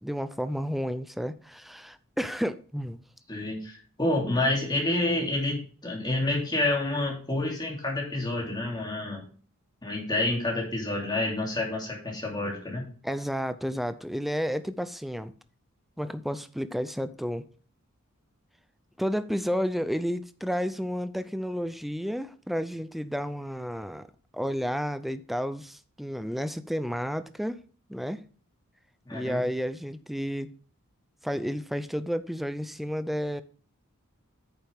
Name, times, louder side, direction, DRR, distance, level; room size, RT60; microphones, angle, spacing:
voice 1, 0.0-3.0 13.0-15.3 16.0-17.5 19.0-24.1 24.3-27.6 27.9-28.2 29.1-30.5 31.2-33.4, equal, ahead, 0.5 m, -31 dB
voice 2, 3.3-9.2 9.8-12.9 29.1-29.4, left 2 dB, 20° left, 2.9 m, -28 dB
9.1 x 7.4 x 3.5 m
head